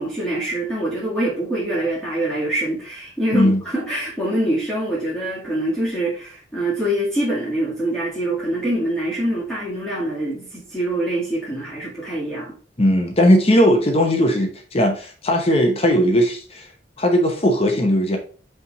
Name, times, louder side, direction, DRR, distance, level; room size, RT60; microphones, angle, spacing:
voice 1, 0.0-12.5, right 1 dB, 5° left, 2.0 m, -24 dB
voice 2, 12.8-16.7 17.0-18.2, equal, 35° left, 1.0 m, -18 dB
5.6 x 3.5 x 5.2 m
head